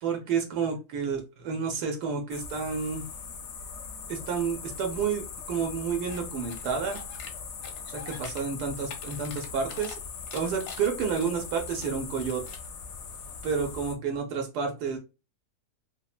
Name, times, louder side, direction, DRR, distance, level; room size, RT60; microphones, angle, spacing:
voice 1, 0.0-3.1 4.1-7.0 7.9-10.0 10.3-12.4 13.4-15.0, right 6 dB, 80° right, 3 dB, 1.2 m, -30 dB
sound 1, 2.3-13.9, left 6 dB, 70° left, 0.7 m, -40 dB
sound 2, 6.1-6.2 6.5-7.3 7.6-8.4 8.7-10.0 10.3-11.9 12.2-12.7, left 6 dB, 90° left, 1.2 m, -44 dB
3.1 x 2.1 x 2.3 m, 0.29 s
omnidirectional pair, 1.7 m